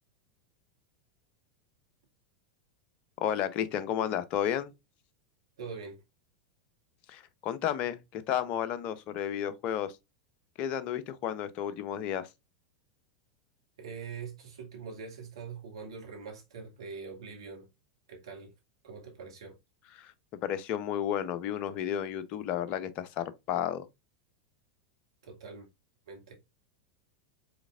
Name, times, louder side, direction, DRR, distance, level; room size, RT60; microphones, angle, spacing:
voice 1, 3.2-4.7 7.1-9.9 10.6-12.3 20.0-20.1 20.4-23.9, left 10 dB, 45° left, 0.7 m, -32 dB
voice 2, 5.6-6.0 13.8-17.7 18.1-18.5 18.8-19.6 25.2-25.7 26.1-26.3, right 5 dB, 70° right, 2.1 m, -43 dB
5.0 x 4.1 x 2.5 m
figure-of-eight pair, 90°, 3 cm